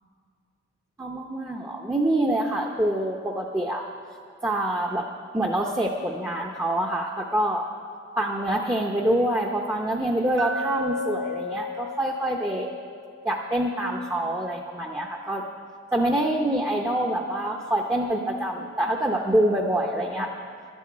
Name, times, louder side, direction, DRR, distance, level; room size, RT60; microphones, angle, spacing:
voice 1, 1.0-3.8 4.4-5.0 5.3-7.7 8.2-12.7 13.2-15.4 15.9-20.3, right 1 dB, 15° right, 0 dB, 0.7 m, -26 dB
Glass, 10.4-14.5, left 1 dB, 60° right, 0.7 m, -35 dB
11.5 x 10.0 x 8.5 m, 2.2 s
head